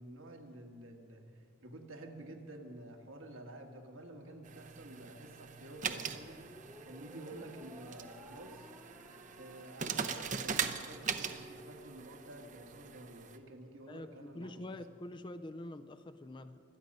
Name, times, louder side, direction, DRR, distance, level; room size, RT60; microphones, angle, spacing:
voice 1, 0.0-6.4 6.8-8.7 9.4-14.8, right 1 dB, 70° right, 3 dB, 1.6 m, -50 dB
sound 1, 4.4-13.4, right 6 dB, 35° right, 0.6 m, -41 dB
sound 2, 6.1-12.6, right 1 dB, 10° right, 1.1 m, -57 dB
voice 2, 13.9-16.6, left 1 dB, 20° left, 11 dB, 0.4 m, -46 dB
25.0 x 9.2 x 5.4 m, 2.6 s
head